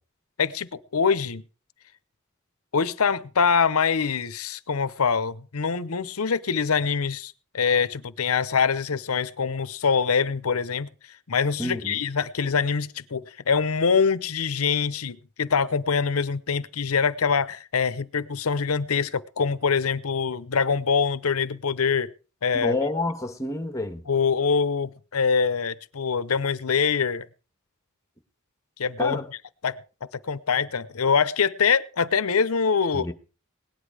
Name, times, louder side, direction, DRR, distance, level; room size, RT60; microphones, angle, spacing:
voice 1, 0.4-1.4 2.7-10.9 11.3-22.1 22.4-22.8 24.1-27.3 28.8-29.2 29.6-29.8 30.3-33.1, left 5 dB, 85° left, 0.8 m, -24 dB
voice 2, 11.6-12.0 22.5-24.0 29.0-29.3 32.9-33.1, left 2 dB, 15° left, 1.5 m, -29 dB
18.0 x 10.0 x 4.8 m
head